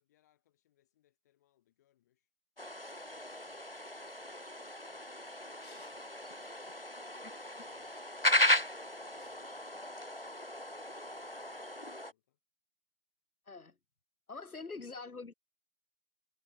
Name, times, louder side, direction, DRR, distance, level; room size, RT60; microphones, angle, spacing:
voice 1, 0.0-2.3 2.8-6.8 7.1-8.5 8.9-10.2 10.7-12.4 14.8-15.3, left 13 dB, 10° left, 5.6 m, -73 dB
sound 1, 2.6-12.1, left 1 dB, 40° left, 0.5 m, -36 dB
voice 2, 5.6-5.9 7.2-7.3 13.5-13.8 14.3-15.3, left 4 dB, 75° left, 2.2 m, -45 dB
figure-of-eight pair, 175°, 45 cm